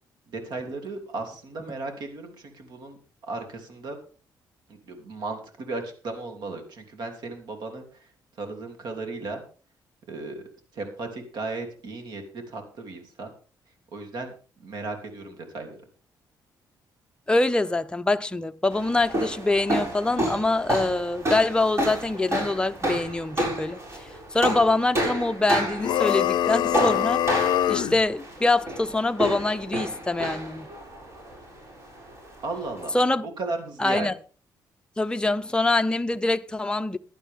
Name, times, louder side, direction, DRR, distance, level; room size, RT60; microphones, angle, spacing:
voice 1, 0.3-4.0 4.7-8.1 8.4-9.4 10.1-10.5 10.7-13.3 13.9-15.8 32.4-32.9 33.2-34.1, right 3 dB, 70° right, 3.2 m, -35 dB
voice 2, 17.3-30.7 32.9-33.3 33.8-34.1 35.0-37.0, left 2 dB, 10° left, 0.7 m, -24 dB
sound 1, 18.7-33.0, right 1 dB, 40° right, 7.0 m, -30 dB
sound 2, 25.8-28.0, left 12 dB, 75° left, 0.5 m, -24 dB
16.0 x 11.0 x 3.7 m
cardioid pair, 105°, 8 cm